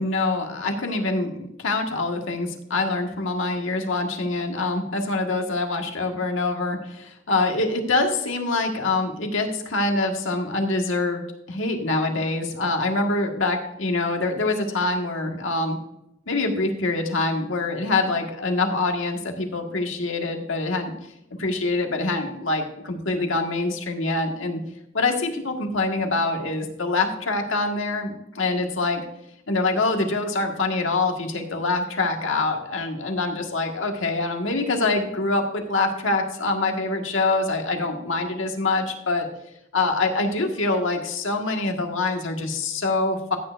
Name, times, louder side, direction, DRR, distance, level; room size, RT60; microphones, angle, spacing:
voice 1, 0.0-15.8 16.3-20.9 21.4-24.6 24.9-29.0 29.5-39.3 39.7-43.4, left 3 dB, 75° left, 3 dB, 1.7 m, -25 dB
14.5 x 9.0 x 2.5 m, 0.83 s
head